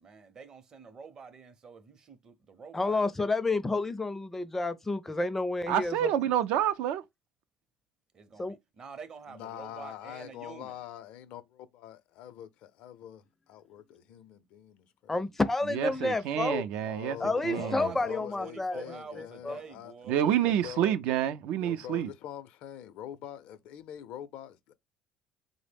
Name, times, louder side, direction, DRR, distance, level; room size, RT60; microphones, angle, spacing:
voice 1, 0.0-3.0 8.1-10.8 17.5-20.2, right 5 dB, 35° right, 0.6 m, -47 dB
voice 2, 2.7-6.1 8.4-8.6 15.1-16.6 17.2-18.8 19.2-19.6, left 2 dB, 15° left, 0.4 m, -30 dB
voice 3, 5.7-7.0 15.7-17.2 17.4-17.9 20.1-22.1, right 10 dB, 75° right, 0.4 m, -28 dB
voice 4, 9.3-15.3 16.8-19.9 20.2-20.9 21.6-24.7, left 11 dB, 70° left, 0.5 m, -44 dB
3.8 x 2.0 x 3.3 m
cardioid pair, 110°, 2 cm